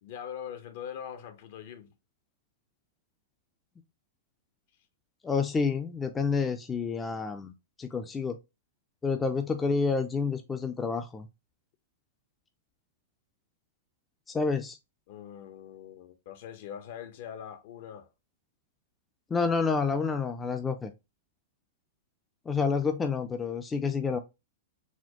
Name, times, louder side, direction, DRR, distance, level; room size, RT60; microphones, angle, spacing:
voice 1, 0.0-1.9 15.1-18.1, left 9 dB, 60° left, 0.7 m, -42 dB
voice 2, 5.2-7.5 7.8-8.4 9.0-11.3 14.3-14.8 19.3-20.9 22.5-24.2, left 5 dB, 15° left, 0.4 m, -29 dB
4.2 x 2.3 x 2.8 m
hypercardioid pair, 140°, 0 cm